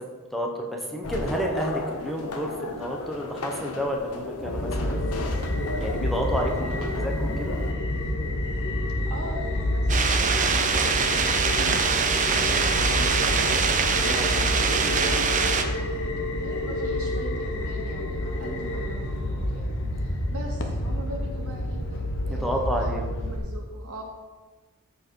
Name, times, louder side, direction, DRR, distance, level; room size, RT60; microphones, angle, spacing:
voice 1, 0.3-5.0 5.7-7.6 13.9-14.3 18.4-18.8 22.3-23.1, equal, ahead, 0 dB, 1.0 m, -30 dB
sound 1, 1.0-7.7, left 2 dB, 80° left, 1.1 m, -34 dB
sound 2, 4.4-23.4, left 1 dB, 60° left, 1.1 m, -28 dB
voice 2, 9.1-21.8 22.3-24.0, equal, 80° right, -1 dB, 2.2 m, -40 dB
sound 3, 9.9-15.6, right 5 dB, 35° right, 0.7 m, -23 dB
14.0 x 4.9 x 4.6 m, 1.3 s
head